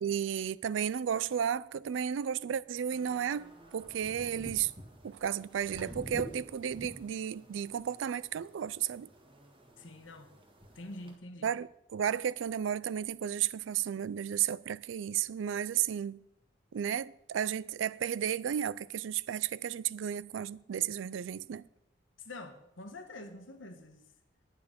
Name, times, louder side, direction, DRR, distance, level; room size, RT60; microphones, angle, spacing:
voice 1, 0.0-4.7 5.0-9.1 11.4-16.2 16.7-21.7, right 9 dB, 75° right, 0.3 m, -33 dB
sound 1, 2.9-11.1, equal, 30° right, 1.5 m, -49 dB
voice 2, 9.8-10.3 10.7-11.5 22.2-24.0, left 2 dB, 80° left, 1.4 m, -46 dB
10.0 x 9.0 x 5.2 m
head